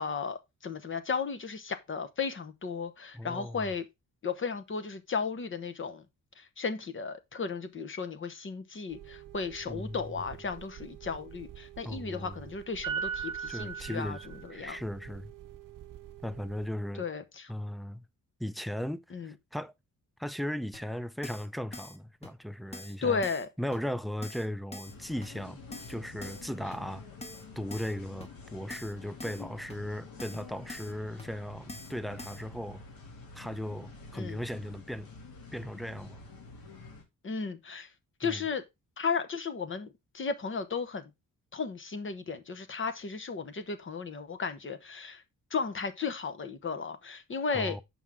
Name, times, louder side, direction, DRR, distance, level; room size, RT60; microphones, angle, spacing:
voice 1, 0.0-3.8 4.2-6.0 6.4-14.8 17.0-17.5 19.1-19.3 23.0-23.5 34.1-34.4 37.2-37.9 38.2-38.6 39.0-41.1 41.5-45.2 45.5-47.8, left 5 dB, 35° left, 1.0 m, -35 dB
voice 2, 3.1-3.7 9.7-10.0 11.8-12.3 13.5-15.3 16.2-17.1 17.5-18.1 18.4-19.7 20.2-23.2 23.6-25.6 25.9-27.1 27.6-32.8 33.3-35.1 35.5-36.2 38.2-38.4 47.5-47.8, equal, ahead, 0.3 m, -37 dB
sound 1, 8.9-16.7, right 7 dB, 65° right, 0.9 m, -42 dB
Keyboard (musical), 20.7-20.8 21.2-21.5 21.7-22.0 22.2-22.3 22.7-23.0 23.2-23.5 23.7-23.8 24.2-24.5 24.7-24.9 25.2-25.3 25.7-25.9 26.2-26.4 26.7-26.8 27.2-27.4 27.7-27.9 28.2-28.3 28.7-28.9 29.2-29.4 29.7-29.8 30.2-30.4 30.7-30.9 31.2-31.3 31.7-31.9 32.2-32.4, left 2 dB, 20° left, 1.4 m, -44 dB
sound 2, 24.8-37.0, left 4 dB, 75° left, 2.5 m, -48 dB
7.7 x 5.5 x 3.6 m
wide cardioid pair, 135°, 35 cm